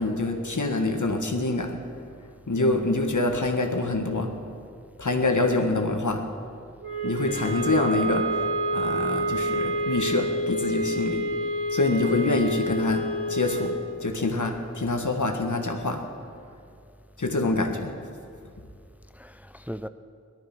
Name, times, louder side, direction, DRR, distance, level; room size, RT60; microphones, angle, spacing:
voice 1, 0.0-1.8 2.5-4.3 5.0-6.2 7.0-8.3 8.7-11.2 11.7-13.7 14.0-16.0 17.2-17.9, left 2 dB, 80° left, 3 dB, 1.6 m, -25 dB
voice 2, 2.6-3.0 5.3-5.5 7.2-7.8 19.2-19.9, equal, 5° right, 11 dB, 0.5 m, -38 dB
sound 1, 6.8-13.8, equal, 50° right, 4.7 m, -28 dB
18.0 x 12.5 x 6.1 m, 2.4 s
wide cardioid pair, 50°, 30 cm